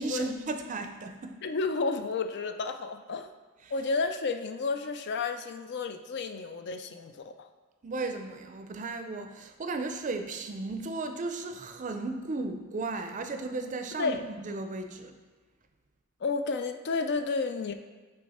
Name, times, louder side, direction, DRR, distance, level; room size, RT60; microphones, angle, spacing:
voice 1, 0.0-1.4 3.6-3.7 7.8-14.2 14.4-15.1, right 3 dB, 35° right, 6 dB, 0.5 m, -35 dB
voice 2, 1.4-3.3 3.7-7.5 14.0-14.2 16.2-17.7, left 4 dB, 55° left, 8 dB, 0.4 m, -31 dB
7.6 x 3.2 x 4.2 m, 1.3 s
head